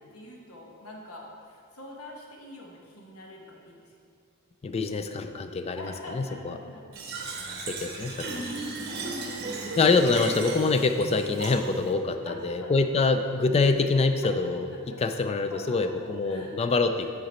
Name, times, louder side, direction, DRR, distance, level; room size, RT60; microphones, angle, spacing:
voice 1, 0.1-3.9 5.8-7.0 8.3-8.6 8.9-9.8 12.2-13.2 14.2-14.4 14.7-15.0 15.5-16.6 17.0-17.1, left 1 dB, 80° left, -1 dB, 1.1 m, -45 dB
voice 2, 4.6-6.5 7.7-8.4 9.8-14.7 15.0-17.1, left 3 dB, 30° left, 8 dB, 0.3 m, -25 dB
Fill (with liquid), 6.9-11.9, right 2 dB, 50° right, 0.7 m, -35 dB
9.5 x 3.9 x 4.3 m, 2.3 s
head